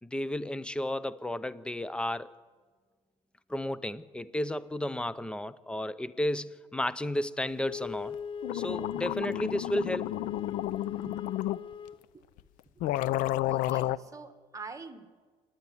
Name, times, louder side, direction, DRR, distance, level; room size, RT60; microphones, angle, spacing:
voice 1, 0.0-2.3 3.5-8.2 8.5-10.1 11.1-11.2, left 1 dB, 5° left, 17 dB, 0.7 m, -33 dB
Wind instrument woodwind instrument, 7.6-12.1, left 6 dB, 40° left, 0.7 m, -40 dB
sound 1, 8.1-8.2 8.4-11.6 12.4-12.5 12.8-14.0, left 15 dB, 80° left, 0.5 m, -31 dB
voice 2, 13.5-15.1, right 4 dB, 25° right, 9 dB, 1.8 m, -45 dB
26.5 x 10.5 x 9.7 m, 1.5 s
supercardioid pair, 90°, 14 cm